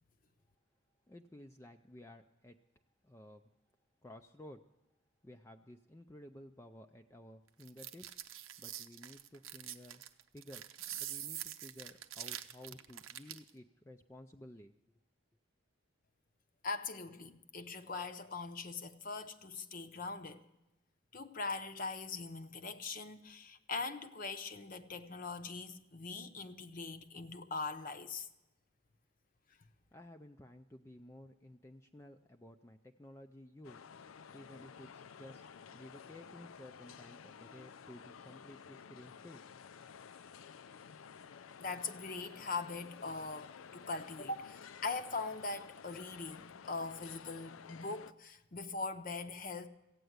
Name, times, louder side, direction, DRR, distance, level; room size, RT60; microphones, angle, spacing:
voice 1, 1.1-2.6 3.0-3.4 4.0-4.6 5.2-8.1 8.6-10.0 10.3-14.7 29.9-33.8 34.3-39.7, left 1 dB, 15° left, 0.4 m, -54 dB
sound 1, 7.6-13.5, right 11 dB, 90° right, 0.8 m, -45 dB
voice 2, 16.6-20.4 21.1-28.3 41.6-49.7, left 3 dB, 45° left, 0.7 m, -41 dB
sound 2, 33.6-48.1, left 6 dB, 85° left, 0.5 m, -53 dB
15.5 x 9.0 x 7.9 m
head